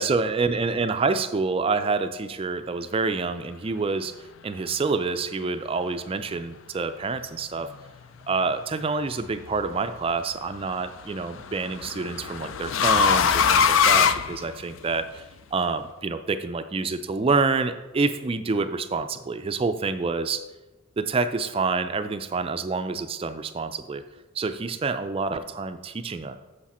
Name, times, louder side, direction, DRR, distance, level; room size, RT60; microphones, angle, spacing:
voice 1, 0.0-4.2 4.4-7.7 8.3-15.2 15.5-20.4 21.0-24.0 24.3-26.4, right 4 dB, 25° right, 9 dB, 0.3 m, -27 dB
sound 1, 9.1-9.6 11.0-15.0, left 6 dB, 65° left, 0.4 m, -22 dB
7.3 x 6.5 x 4.2 m, 1.1 s
head